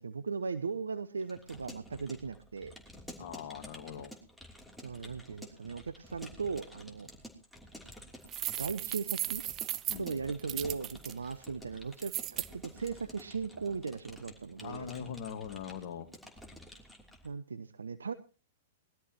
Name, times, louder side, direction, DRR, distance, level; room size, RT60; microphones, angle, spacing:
voice 1, 0.0-2.7 4.8-7.1 8.6-9.4 10.0-14.9 17.2-18.1, right 5 dB, 80° right, 13 dB, 0.6 m, -38 dB
Keyboard (musical) / Computer keyboard, 1.2-17.3, equal, ahead, 3.1 m, -51 dB
voice 2, 3.2-4.2 9.9-10.2 14.6-16.1, left 8 dB, 55° left, 3 dB, 1.6 m, -42 dB
sound 1, 8.3-11.1 12.0-12.5, right 13 dB, 35° right, 0.6 m, -36 dB
20.5 x 12.5 x 3.0 m, 0.34 s
hypercardioid pair, 110°, 0 cm